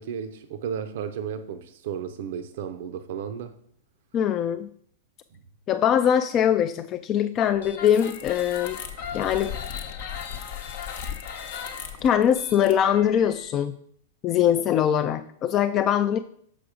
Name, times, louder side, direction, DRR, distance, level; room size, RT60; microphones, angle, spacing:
voice 1, 0.0-3.6 5.3-5.4, right 7 dB, 65° right, 0.5 m, -34 dB
voice 2, 4.1-4.7 5.7-8.8 9.1-9.5 12.0-13.8 14.2-16.2, left 9 dB, 35° left, 0.3 m, -22 dB
sound 1, 7.6-13.5, left 7 dB, 65° left, 0.9 m, -36 dB
6.1 x 5.1 x 4.8 m
hypercardioid pair, 115°, 0 cm